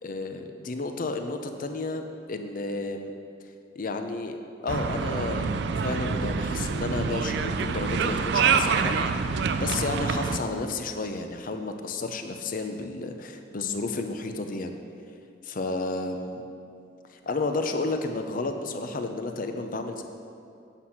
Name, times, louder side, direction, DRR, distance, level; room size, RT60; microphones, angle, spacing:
voice 1, 0.0-2.0 2.3-3.1 3.8-14.8 15.4-16.4 17.1-20.0, left 3 dB, 45° left, 6 dB, 0.6 m, -32 dB
sound 1, 4.7-10.4, right 5 dB, 60° right, 0.4 m, -26 dB
8.2 x 5.9 x 5.8 m, 2.6 s
head